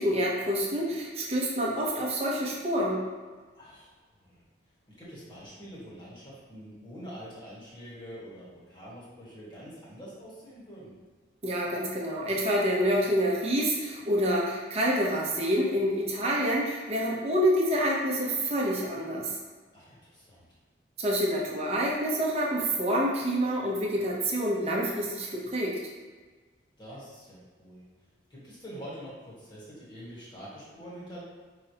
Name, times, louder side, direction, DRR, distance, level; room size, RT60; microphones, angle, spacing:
voice 1, 0.0-3.0 11.4-19.3 21.0-25.8, equal, 35° right, -3 dB, 0.8 m, -27 dB
voice 2, 3.5-3.9 4.2-4.4 5.0-10.9 19.7-20.5 26.8-27.8 28.3-31.2, equal, 25° left, -9 dB, 1.4 m, -45 dB
5.3 x 3.3 x 2.8 m, 1.3 s
head